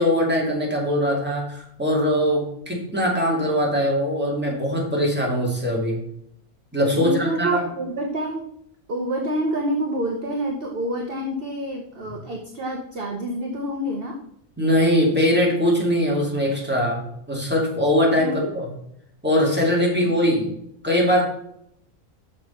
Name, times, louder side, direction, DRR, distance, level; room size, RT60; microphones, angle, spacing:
voice 1, 0.0-6.0 6.7-7.6 14.6-18.7 19.2-20.5 20.8-21.3, equal, 5° right, -3 dB, 2.4 m, -21 dB
voice 2, 6.9-8.5 8.9-14.2 18.2-18.4 20.0-20.1, right 1 dB, 45° right, 2 dB, 1.1 m, -27 dB
6.7 x 6.2 x 5.7 m, 0.76 s
omnidirectional pair, 1.4 m